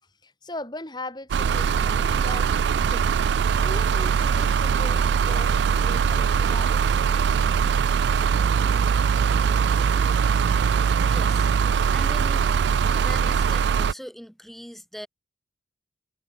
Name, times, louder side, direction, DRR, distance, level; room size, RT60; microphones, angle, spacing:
voice 1, 0.2-2.5 2.9-3.1 3.6-7.0, left 1 dB, 25° left, 5.7 m, -39 dB
sound 1, 1.3-13.9, right 6 dB, 75° right, 0.3 m, -21 dB
voice 2, 11.0-11.5 11.9-12.6 12.9-15.1, equal, ahead, 2.8 m, -40 dB
head